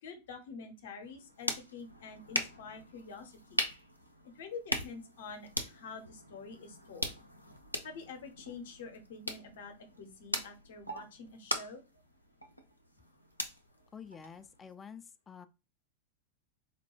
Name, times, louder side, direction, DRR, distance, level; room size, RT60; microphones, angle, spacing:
voice 1, 0.0-3.6 4.3-7.1 7.8-11.8, left 4 dB, 55° left, 0.7 m, -47 dB
sound 1, 1.0-14.7, equal, 90° left, 0.5 m, -41 dB
voice 2, 13.9-15.5, left 7 dB, 20° left, 0.3 m, -49 dB
4.1 x 2.2 x 3.0 m
figure-of-eight pair, 90°, 0 cm